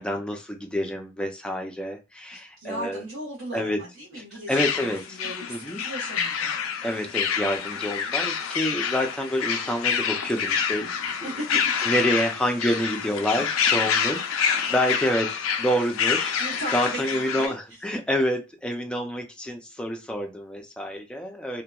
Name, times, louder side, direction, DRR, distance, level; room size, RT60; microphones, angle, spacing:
voice 1, 0.0-3.0 3.5-3.8 4.5-5.2 5.5-5.8 6.8-10.9 11.8-16.3 16.7-21.6, equal, 5° left, 2 dB, 0.4 m, -28 dB
voice 2, 2.3-6.5 11.2-11.4 13.9-14.4 16.4-17.6, right 1 dB, 80° right, -9 dB, 1.1 m, -37 dB
sound 1, 4.5-17.5, left 7 dB, 85° left, 0.4 m, -27 dB
2.9 x 2.1 x 2.3 m, 0.27 s
head